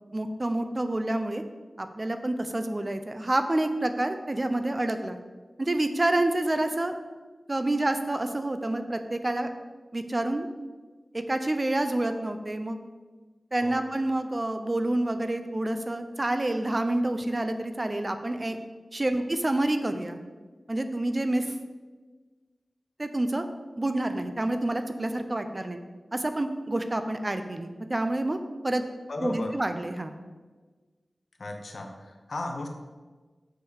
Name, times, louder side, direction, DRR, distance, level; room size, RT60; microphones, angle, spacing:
voice 1, 0.1-1.4 1.8-5.2 5.6-7.0 7.5-9.5 9.9-10.5 11.1-12.8 13.5-18.6 18.9-20.2 20.7-21.5 23.0-23.5 23.8-25.8 26.1-28.4 28.6-28.8 29.2-30.1, right 1 dB, 35° right, 8 dB, 0.7 m, -28 dB
voice 2, 29.1-29.6 31.4-32.7, left 2 dB, 70° left, 4 dB, 1.0 m, -35 dB
6.8 x 6.3 x 5.0 m, 1.3 s
wide cardioid pair, 55°, 0 cm